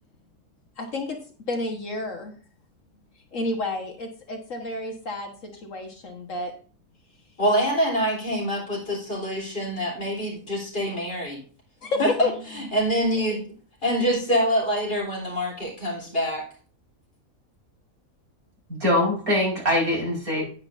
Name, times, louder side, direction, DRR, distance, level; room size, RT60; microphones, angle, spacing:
voice 1, 0.8-1.2 1.5-2.3 3.3-6.5 11.8-12.4 20.4-20.5, left 2 dB, 60° left, 3 dB, 1.7 m, -30 dB
voice 2, 7.4-11.4 12.0-12.1 12.5-13.4 13.8-16.4, equal, 35° left, -2 dB, 4.1 m, -25 dB
voice 3, 18.7-20.4, left 1 dB, 70° right, -4 dB, 5.6 m, -23 dB
10.0 x 9.6 x 2.6 m, 0.41 s
omnidirectional pair, 1.6 m